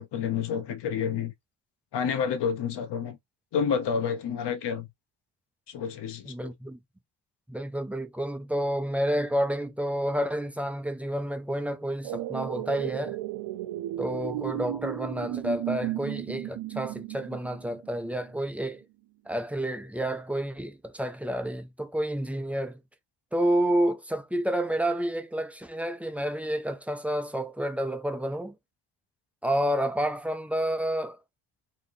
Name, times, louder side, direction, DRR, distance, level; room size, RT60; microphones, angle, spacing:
voice 1, 0.0-1.3 1.9-3.2 3.5-4.9 5.7-6.5, left 7 dB, 60° left, 1.0 m, -29 dB
voice 2, 6.3-6.8 7.5-13.2 14.0-18.8 19.3-22.8 23.3-28.5 29.4-31.2, right 1 dB, 5° right, 0.3 m, -29 dB
sound 1, 12.0-18.2 18.5-18.6, right 15 dB, 70° right, 0.6 m, -34 dB
4.3 x 2.7 x 3.0 m
wide cardioid pair, 170°, 47 cm